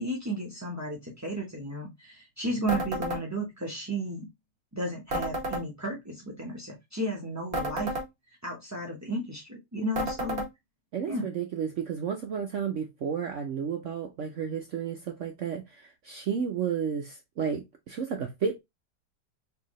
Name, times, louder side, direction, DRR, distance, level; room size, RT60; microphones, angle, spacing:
voice 1, 0.0-4.3 4.7-7.9 8.4-10.5 11.1-11.3, right 1 dB, 15° right, 0.6 m, -33 dB
sound 1, 2.7-3.2 5.1-5.6 7.5-8.1 10.0-10.5, right 1 dB, 35° right, 1.5 m, -31 dB
voice 2, 10.9-18.6, right 7 dB, 65° right, 0.7 m, -32 dB
4.6 x 3.4 x 3.0 m
omnidirectional pair, 1.9 m